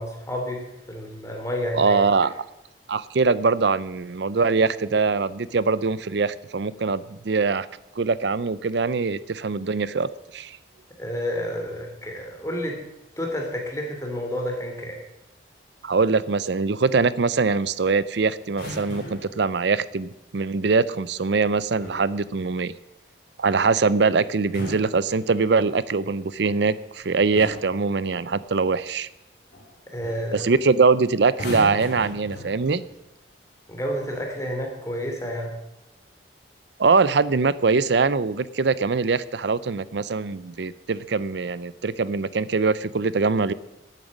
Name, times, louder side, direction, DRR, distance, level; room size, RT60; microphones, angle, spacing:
voice 1, 0.0-2.0 11.0-12.8 13.2-15.0 29.9-30.5 33.7-35.6, equal, 15° left, 1 dB, 2.7 m, -30 dB
voice 2, 1.7-2.3 2.9-7.7 8.0-10.6 15.8-22.7 23.4-29.1 30.3-32.8 36.8-43.5, right 4 dB, 65° right, 17 dB, 0.5 m, -22 dB
sound 1, 18.5-19.4 21.5-22.2 24.3-25.7 26.7-27.0 27.3-27.8 29.5-29.7 30.0-30.3 31.3-32.9 33.9-34.1, left 1 dB, 55° left, 3.7 m, -37 dB
11.5 x 9.2 x 7.3 m, 0.93 s
head